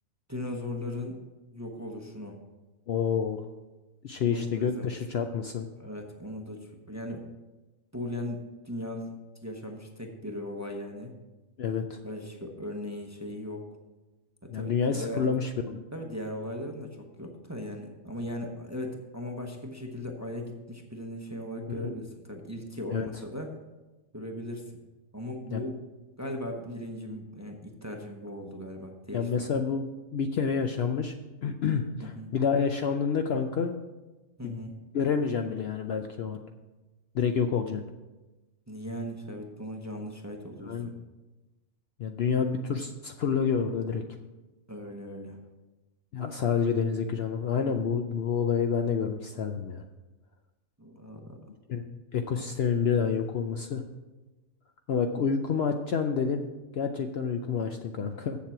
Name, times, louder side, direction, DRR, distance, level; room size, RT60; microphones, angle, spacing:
voice 1, 0.3-1.2 1.5-2.4 4.2-4.9 5.8-7.2 7.9-9.1 9.4-11.1 12.0-13.6 14.5-15.3 15.9-23.5 24.1-24.6 25.1-25.8 26.2-29.5 32.2-32.3 34.4-34.8 38.7-40.9 44.7-45.4 50.8-51.4, left 1 dB, 15° right, 2 dB, 0.8 m, -38 dB
voice 2, 2.9-3.4 4.0-5.7 11.6-12.0 14.5-15.8 21.7-22.0 22.9-23.1 25.5-25.6 29.1-29.8 30.1-31.1 31.4-33.7 34.4-34.6 34.9-36.4 37.1-37.8 40.6-40.9 42.0-44.0 46.1-49.8 51.7-51.9 52.1-53.9 54.9-56.4 56.7-58.4, left 6 dB, 60° left, 5 dB, 0.7 m, -28 dB
7.6 x 7.3 x 5.8 m, 1.1 s
omnidirectional pair, 1.4 m